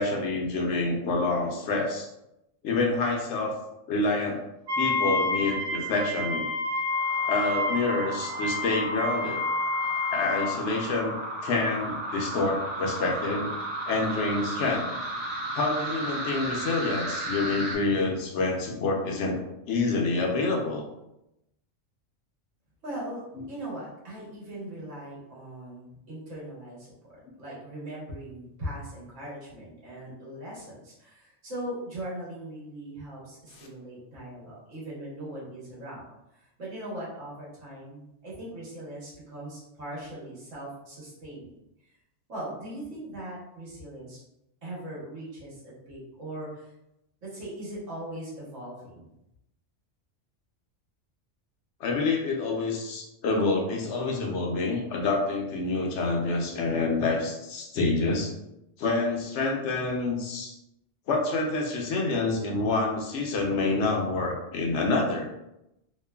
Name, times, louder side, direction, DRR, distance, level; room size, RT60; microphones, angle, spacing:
voice 1, 0.0-2.1 2.6-3.6 3.9-4.4 4.8-6.5 7.3-9.4 10.1-11.1 11.4-13.5 13.9-14.9 15.5-19.4 19.7-20.8 33.6-33.7 51.8-58.3 58.8-60.6 61.1-65.3, left 3 dB, 75° left, 0 dB, 0.9 m, -27 dB
Wind instrument woodwind instrument, 4.7-10.6, left 2 dB, 45° right, 0.6 m, -29 dB
sound 1, 6.9-17.8, right 1 dB, 65° right, 1.1 m, -35 dB
voice 2, 22.8-41.5 42.3-44.2 44.6-46.7 47.2-49.1, right 1 dB, 90° right, -7 dB, 1.5 m, -40 dB
3.1 x 2.1 x 2.2 m, 0.86 s
omnidirectional pair, 1.2 m